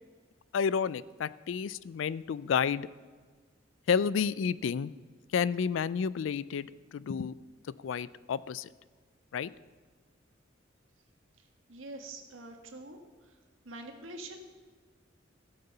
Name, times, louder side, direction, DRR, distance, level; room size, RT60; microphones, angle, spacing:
voice 1, 0.5-2.9 3.9-4.9 5.3-7.4 7.6-8.7 9.3-9.5, left 6 dB, 70° left, 19 dB, 0.4 m, -30 dB
voice 2, 11.7-13.3 13.6-14.4, right 2 dB, 80° right, 4 dB, 1.5 m, -45 dB
16.0 x 6.7 x 5.6 m, 1.5 s
head